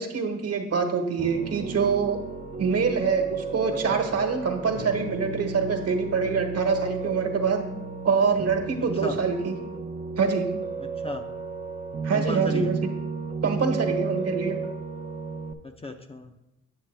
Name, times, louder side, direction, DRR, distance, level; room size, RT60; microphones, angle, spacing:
voice 1, 0.0-2.2 2.6-7.6 8.0-9.5 10.2-10.5 12.0-12.8 13.4-14.6, right 5 dB, 55° right, 5 dB, 1.3 m, -25 dB
Piano, 1.2-15.5, right 4 dB, 25° right, 0.6 m, -33 dB
voice 2, 3.7-4.0 8.8-9.2 10.8-11.2 12.1-12.7 15.6-16.3, left 2 dB, 20° left, 5 dB, 0.6 m, -36 dB
8.9 x 6.6 x 3.3 m, 0.90 s
cardioid pair, 90°, 30 cm